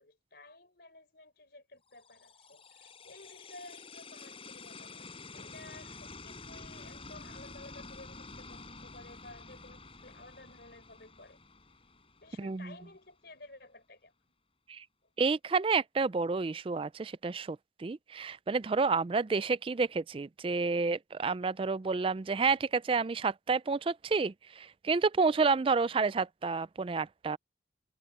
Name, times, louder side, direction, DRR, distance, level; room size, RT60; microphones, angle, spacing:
voice 1, 0.0-11.4 12.2-14.1 15.0-15.1, left 2 dB, 55° left, 5.4 m, -54 dB
sound 1, 1.9-13.0, left 3 dB, 30° left, 5.6 m, -49 dB
voice 2, 12.4-12.7 14.7-14.8 15.2-27.4, right 4 dB, 30° right, 0.3 m, -30 dB
head